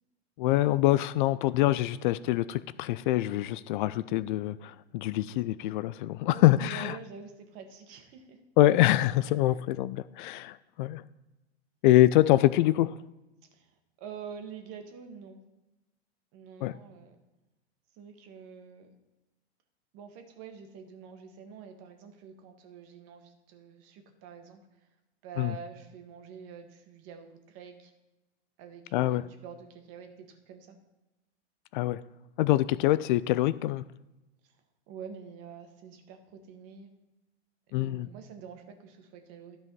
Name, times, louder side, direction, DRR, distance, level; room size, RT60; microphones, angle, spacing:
voice 1, 0.4-7.0 8.6-11.0 11.8-13.0 16.6-16.7 25.4-25.5 28.9-29.2 31.7-32.0 32.4-33.8 37.7-38.1, left 15 dB, 50° left, 16 dB, 0.4 m, -25 dB
voice 2, 6.3-8.4 9.4-9.6 13.5-15.4 16.3-17.2 18.0-18.9 19.9-24.6 25.2-27.9 28.6-30.8 34.4-34.6 34.9-36.9 37.7-39.6, right 6 dB, 45° right, 5 dB, 1.8 m, -47 dB
12.5 x 5.3 x 5.5 m, 1.0 s
hypercardioid pair, 105°, 33 cm